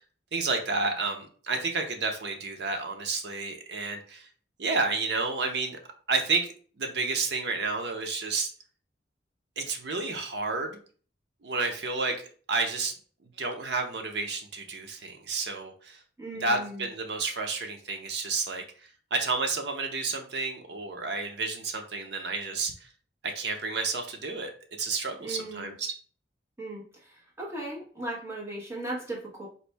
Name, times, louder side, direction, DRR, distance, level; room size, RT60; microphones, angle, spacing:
voice 1, 0.3-4.3 4.6-5.8 6.1-6.5 6.8-8.5 9.6-10.8 11.4-12.2 12.5-12.9 13.4-16.0 16.4-18.6 19.1-22.7 23.2-24.5 24.8-25.9, right 3 dB, 75° right, 4 dB, 0.7 m, -30 dB
voice 2, 16.2-16.9 25.2-25.7 26.6-26.8 27.1-29.5, right 1 dB, 15° right, -4 dB, 1.2 m, -37 dB
4.1 x 2.6 x 3.3 m, 0.43 s
head